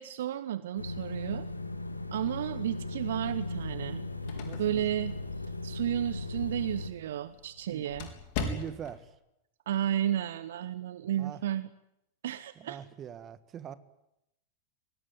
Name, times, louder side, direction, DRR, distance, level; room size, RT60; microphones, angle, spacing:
voice 1, 0.0-1.5 2.1-4.0 4.3-5.1 5.6-8.1 9.7-11.7 12.2-12.8, right 11 dB, 60° right, 16 dB, 0.9 m, -32 dB
sound 1, 0.8-6.9, left 2 dB, 85° left, 1.8 m, -37 dB
sound 2, 3.8-9.1, left 4 dB, 45° left, 3.9 m, -41 dB
voice 2, 4.4-4.8 7.7-7.9 8.4-9.1 11.0-11.4 12.6-13.8, right 9 dB, 25° right, 13 dB, 1.6 m, -43 dB
24.0 x 18.5 x 9.4 m, 0.86 s
figure-of-eight pair, 90°, 0 cm